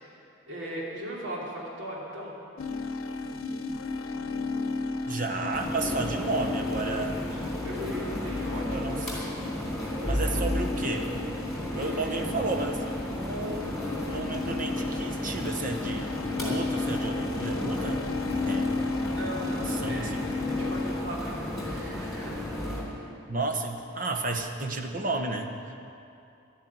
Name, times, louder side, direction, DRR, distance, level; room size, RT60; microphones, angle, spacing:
voice 1, 0.5-2.5 7.2-8.8 11.7-12.2 19.1-20.1 20.5-22.4, equal, 65° right, -4 dB, 2.8 m, -38 dB
sound 1, 2.6-21.0, left 3 dB, 85° left, 0.8 m, -34 dB
voice 2, 5.1-7.2 8.7-9.2 10.0-11.1 11.7-13.7 14.1-18.0 18.4-18.8 19.7-20.2 23.3-25.9, right 3 dB, 40° right, 3 dB, 1.1 m, -32 dB
sound 2, 5.5-22.8, left 1 dB, ahead, 3.2 m, -34 dB
11.5 x 10.0 x 9.3 m, 2.6 s
head